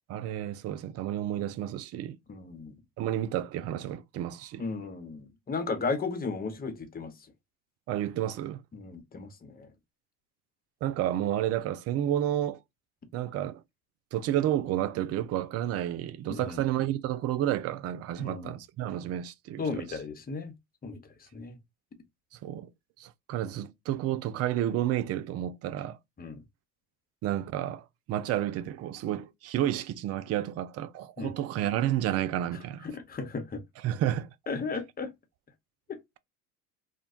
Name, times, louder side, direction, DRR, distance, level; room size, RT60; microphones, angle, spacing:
voice 1, 0.1-2.2 3.0-4.6 7.9-8.6 10.8-12.6 13.1-13.6 14.1-19.8 22.3-22.7 23.0-26.0 27.2-32.9 33.8-34.3, right 12 dB, 40° right, 0.4 m, -31 dB
voice 2, 2.3-2.8 4.6-7.1 8.7-9.7 16.3-16.6 18.2-18.6 19.6-20.5 20.8-21.0 21.3-21.6 26.2-26.4 31.2-31.3 32.8-33.6 34.5-35.1 35.9-36.0, left 4 dB, 20° left, 0.8 m, -35 dB
2.4 x 2.1 x 3.7 m
hypercardioid pair, 70°, 41 cm